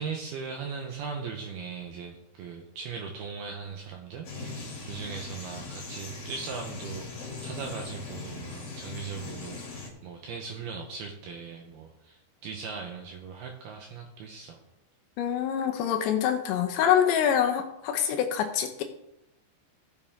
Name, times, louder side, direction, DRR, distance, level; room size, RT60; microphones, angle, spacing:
voice 1, 0.0-14.6, right 5 dB, 75° right, 2 dB, 2.4 m, -39 dB
sound 1, 4.2-9.9, left 3 dB, 40° left, 3.0 m, -40 dB
voice 2, 15.2-18.8, left 9 dB, 75° left, 5 dB, 2.8 m, -25 dB
15.5 x 7.1 x 3.6 m, 0.85 s
omnidirectional pair, 5.5 m